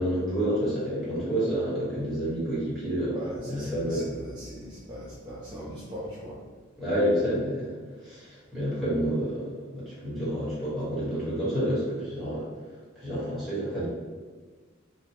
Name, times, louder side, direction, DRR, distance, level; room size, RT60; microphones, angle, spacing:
voice 1, 0.0-3.1 3.4-4.1 6.8-7.8 8.0-12.5 12.9-13.9, equal, ahead, -11 dB, 1.3 m, -29 dB
voice 2, 3.1-6.5, equal, 25° right, -9 dB, 0.5 m, -40 dB
2.9 x 2.2 x 2.8 m, 1.4 s
head